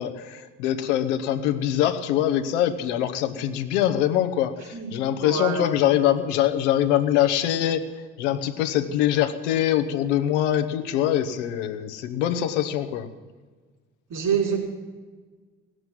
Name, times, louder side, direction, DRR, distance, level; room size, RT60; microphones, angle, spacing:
voice 1, 0.0-7.8 8.2-13.1, left 11 dB, 85° left, 8 dB, 1.0 m, -23 dB
voice 2, 5.2-5.6 14.1-14.6, right 6 dB, 60° right, 1 dB, 5.0 m, -25 dB
17.0 x 7.8 x 9.4 m, 1.4 s
hypercardioid pair, 55°, 35 cm